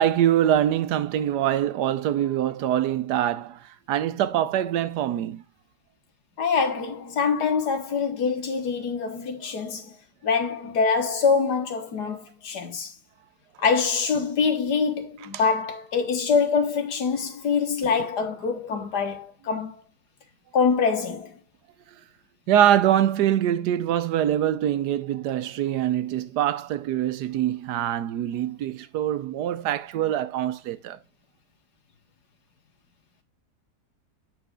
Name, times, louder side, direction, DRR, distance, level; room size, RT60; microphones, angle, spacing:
voice 1, 0.0-5.4 22.5-31.0, right 11 dB, 90° right, 1.3 m, -24 dB
voice 2, 6.4-10.0 10.2-12.9 13.6-19.8 20.5-21.4, left 5 dB, 85° left, 1.9 m, -25 dB
8.9 x 4.1 x 3.7 m
omnidirectional pair, 1.7 m